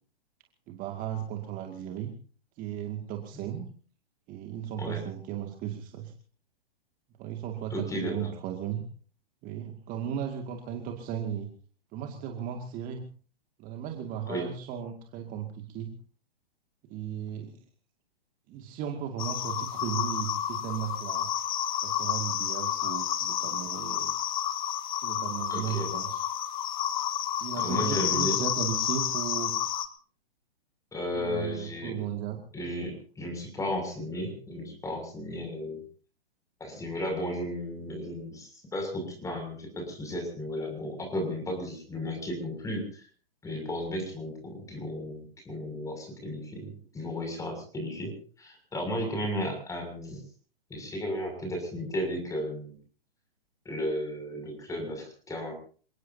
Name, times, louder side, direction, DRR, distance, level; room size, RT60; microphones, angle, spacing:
voice 1, 0.7-2.1 2.6-3.7 4.3-6.1 7.2-8.8 9.4-11.5 11.9-13.0 13.6-16.0 16.9-17.6 18.5-21.3 21.8-24.2 25.0-26.3 27.4-29.6 31.1-32.4, right 9 dB, 25° right, 4 dB, 2.2 m, -36 dB
voice 2, 7.7-8.3 14.3-14.5 25.5-25.9 27.6-28.3 30.9-31.9 32.5-35.8 36.6-43.1 43.4-48.1 48.4-50.2 50.7-52.7 53.6-55.5, equal, 10° left, 4 dB, 6.7 m, -34 dB
sound 1, 19.2-29.9, left 10 dB, 50° left, 1.8 m, -30 dB
28.0 x 18.5 x 2.8 m, 0.42 s
figure-of-eight pair, 120°, 30 cm